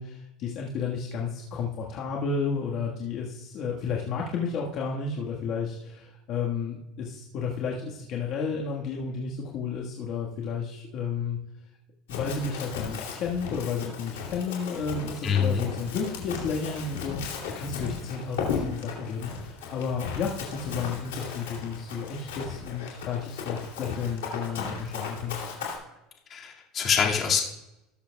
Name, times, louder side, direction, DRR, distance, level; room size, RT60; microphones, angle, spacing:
voice 1, 0.0-11.4 12.1-25.4, left 5 dB, 55° left, -2 dB, 1.5 m, -32 dB
Run, 12.1-25.8, left 6 dB, 85° left, 2.8 m, -36 dB
voice 2, 15.2-15.7 26.3-27.4, left 7 dB, 35° left, 0 dB, 2.1 m, -25 dB
19.0 x 6.7 x 2.3 m, 0.93 s
supercardioid pair, 95°, 0 cm